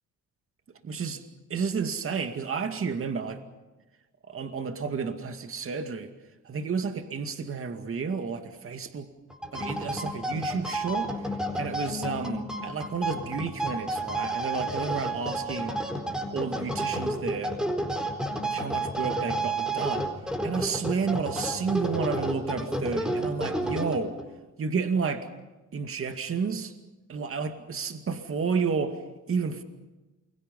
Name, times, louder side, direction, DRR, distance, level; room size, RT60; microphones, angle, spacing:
voice 1, 0.8-1.2 1.5-3.4 4.3-6.1 6.5-9.1 9.5-11.1 11.6-15.8 16.3-17.5 18.4-20.1 20.4-24.1 24.6-25.3 25.7-26.7 27.1-29.0 29.3-29.6, right 5 dB, 45° right, 7 dB, 2.3 m, -31 dB
sound 1, 9.3-24.3, right 1 dB, ahead, 4.2 m, -31 dB
28.5 x 22.5 x 5.5 m, 1.1 s
cardioid pair, 90°, 30 cm